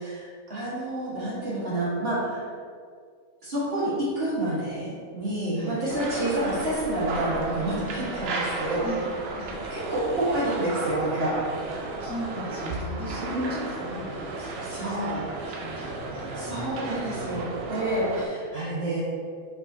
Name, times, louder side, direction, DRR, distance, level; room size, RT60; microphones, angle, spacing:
voice 1, 0.0-2.5 3.4-8.9 9.7-11.4 13.2-13.6 14.6-15.2 16.4-19.0, right 1 dB, 45° right, -9 dB, 1.5 m, -29 dB
sound 1, 5.9-18.3, right 2 dB, 65° right, 0.6 m, -34 dB
voice 2, 12.0-14.3 14.7-16.7 17.1-17.4, equal, 5° left, -9 dB, 0.9 m, -38 dB
4.8 x 4.0 x 2.7 m, 2.1 s
omnidirectional pair, 1.5 m